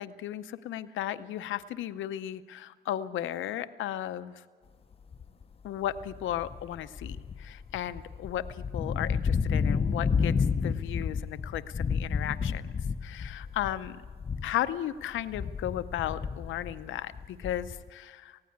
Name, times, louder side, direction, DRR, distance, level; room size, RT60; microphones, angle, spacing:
voice 1, 0.0-4.4 5.6-12.6 13.0-14.0 14.4-18.4, left 11 dB, 75° left, 11 dB, 0.7 m, -35 dB
sound 1, 5.1-5.4 5.9-14.7 15.0-17.9, left 5 dB, 30° left, 0.6 m, -31 dB
19.0 x 15.5 x 9.5 m, 1.6 s
cardioid pair, 90°, 20 cm